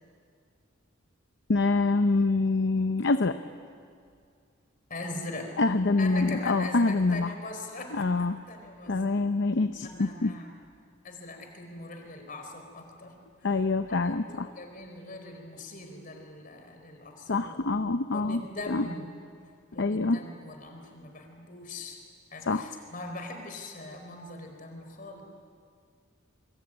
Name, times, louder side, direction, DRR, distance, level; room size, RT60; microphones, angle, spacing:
voice 1, 1.5-3.4 5.6-7.3 7.9-8.4 8.9-10.3 13.4-14.5 17.3-18.4 18.7-18.9 19.8-20.2 22.5-22.7, left 3 dB, 60° left, 9 dB, 0.7 m, -25 dB
voice 2, 4.9-5.6 6.0-9.1 9.8-10.5 11.0-13.2 13.9-17.5 18.1-19.1 19.7-22.0 22.3-25.2, left 2 dB, 45° left, 4 dB, 4.4 m, -41 dB
26.0 x 23.0 x 8.9 m, 2.2 s
head